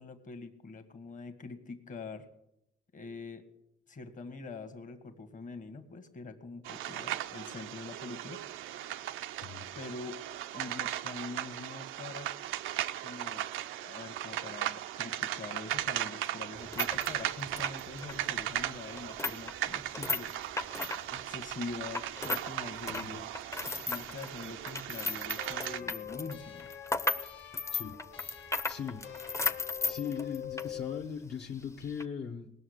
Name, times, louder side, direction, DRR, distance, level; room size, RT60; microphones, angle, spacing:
voice 1, 0.0-2.3 2.9-3.4 3.9-8.4 9.7-10.2 10.5-12.3 13.0-13.5 13.8-20.3 21.0-23.3 23.6-26.7, left 3 dB, 40° left, 9 dB, 1.5 m, -44 dB
sound 1, 6.6-25.8, right 13 dB, 85° right, 0.5 m, -37 dB
sound 2, 16.5-22.5 22.8-30.7 31.0-31.1 31.8-32.0, left 3 dB, 15° left, 0.7 m, -36 dB
voice 2, 22.9-23.2 27.7-28.0 28.7-29.0 29.8-32.5, left 7 dB, 55° left, 0 dB, 1.1 m, -39 dB
sound 3, 25.4-31.1, left 11 dB, 75° left, 1.4 m, -44 dB
19.0 x 6.4 x 8.0 m, 0.85 s
cardioid pair, 90°, 20 cm